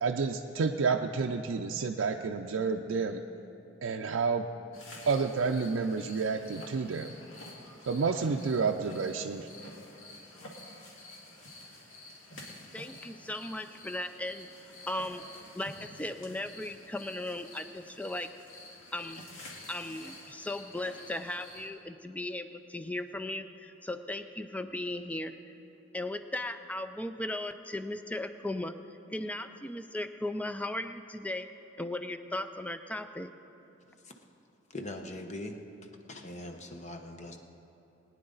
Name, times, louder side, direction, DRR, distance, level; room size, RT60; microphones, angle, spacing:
voice 1, 0.0-3.2 3.8-4.5 5.1-7.1 7.9-9.5, right 4 dB, 85° right, 3 dB, 0.5 m, -30 dB
sound 1, 4.7-21.7, left 2 dB, 90° left, 2.0 m, -50 dB
voice 2, 12.7-14.5 14.9-15.2 15.5-18.3 18.9-19.2 19.7-25.3 25.9-28.7 29.1-31.5 31.8-33.3, left 1 dB, 5° left, 9 dB, 0.4 m, -37 dB
voice 3, 34.7-35.6 36.1-37.4, left 1 dB, 35° left, 4 dB, 0.9 m, -41 dB
21.5 x 9.8 x 3.9 m, 3.0 s
head